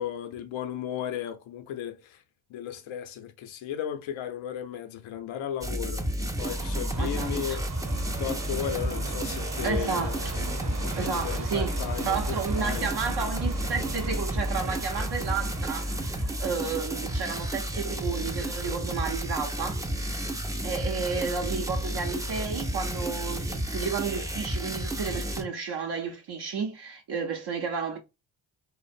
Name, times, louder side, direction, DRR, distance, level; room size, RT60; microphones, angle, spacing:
voice 1, 0.0-2.2 2.5-6.1 6.4-7.9 8.2-12.9 20.2-20.4, left 10 dB, 80° left, 0.6 m, -35 dB
sound 1, 5.6-25.4, right 1 dB, 10° right, 0.4 m, -31 dB
Subway metro underground, 6.4-20.5 20.8-20.9 21.7-21.8 22.1-22.2 22.8-22.9, right 4 dB, 40° right, 0.9 m, -40 dB
voice 2, 7.0-7.6 9.6-10.4 11.0-11.7 12.0-19.9 20.6-28.0, right 5 dB, 60° right, 0.6 m, -32 dB
2.5 x 2.1 x 2.5 m
cardioid pair, 70°, 46 cm